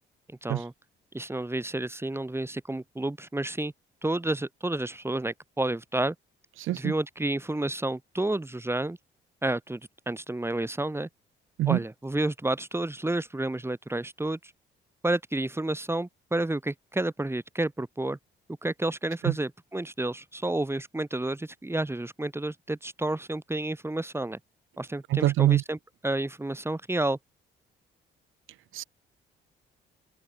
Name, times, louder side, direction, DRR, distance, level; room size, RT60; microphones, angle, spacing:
voice 1, 0.4-0.7 1.1-3.7 4.0-6.1 6.7-9.0 9.4-9.8 10.1-11.1 11.7-14.5 15.0-18.2 18.6-24.4 24.8-25.8 26.0-27.2, right 2 dB, 10° right, 6.7 m, -30 dB
voice 2, 6.6-6.9 11.6-11.8 19.2-19.3 25.1-25.6 28.7-28.8, right 15 dB, 85° right, 4.0 m, -24 dB
cardioid pair, 90°, 20 cm